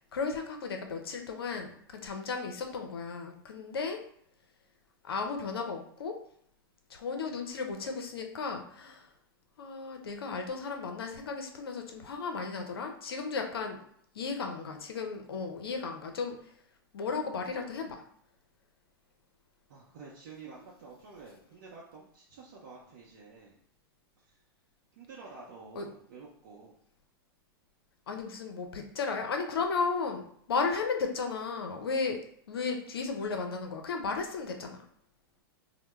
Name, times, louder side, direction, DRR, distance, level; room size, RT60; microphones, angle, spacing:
voice 1, 0.0-4.0 5.0-6.2 6.9-9.1 9.6-13.8 14.1-16.4 16.9-18.0 25.8-25.9 28.1-32.2 32.5-34.8, left 4 dB, 80° left, 4 dB, 0.5 m, -34 dB
voice 2, 19.7-23.6 24.2-24.4 24.9-26.8, right 4 dB, 60° right, -4 dB, 0.6 m, -50 dB
2.2 x 2.0 x 3.0 m, 0.65 s
hypercardioid pair, 105°, 12 cm